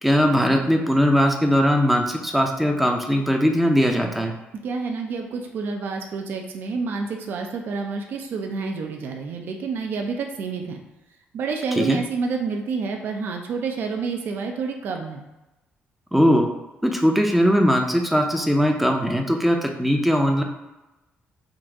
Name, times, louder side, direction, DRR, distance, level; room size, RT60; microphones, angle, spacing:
voice 1, 0.0-4.3 11.8-12.0 16.1-16.5 16.8-20.4, equal, 5° right, 3 dB, 0.5 m, -20 dB
voice 2, 4.6-10.8 11.3-15.2, right 4 dB, 65° right, 3 dB, 0.5 m, -28 dB
3.9 x 2.5 x 4.6 m, 1.0 s
cardioid pair, 140°, 4 cm